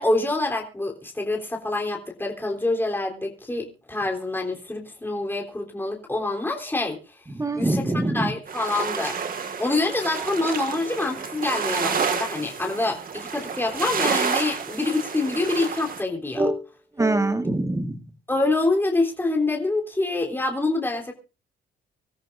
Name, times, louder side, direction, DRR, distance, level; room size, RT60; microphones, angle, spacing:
voice 1, 0.0-7.2 7.6-9.2 9.6-16.4 18.3-21.1, left 2 dB, 10° left, 0 dB, 3.6 m, -26 dB
voice 2, 7.3-8.3 16.4-16.6 17.0-18.0, right 2 dB, 15° right, 8 dB, 1.7 m, -23 dB
sound 1, 8.5-16.0, right 6 dB, 45° right, 2.0 m, -29 dB
26.0 x 13.5 x 2.6 m, 0.35 s
cardioid pair, 90°, 20 cm